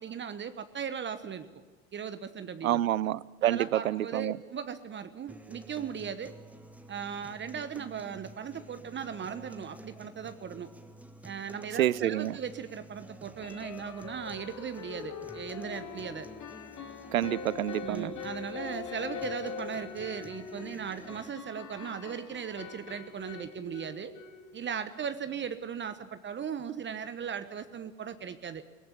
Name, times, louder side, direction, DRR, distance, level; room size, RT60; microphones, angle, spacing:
voice 1, 0.0-1.5 1.9-2.8 3.4-6.3 6.9-10.7 11.2-16.3 17.8-24.1 24.5-28.6, right 7 dB, 25° right, 1.1 m, -38 dB
voice 2, 2.6-4.4 11.8-12.3 17.1-18.1, right 13 dB, 80° right, 0.7 m, -28 dB
sound 1, 5.3-21.3, right 1 dB, 5° right, 1.6 m, -51 dB
sound 2, 9.5-9.6 10.0-10.1 10.4-10.5 13.4-24.9, left 6 dB, 45° left, 2.8 m, -43 dB
23.0 x 18.5 x 8.4 m
figure-of-eight pair, 75°, 41 cm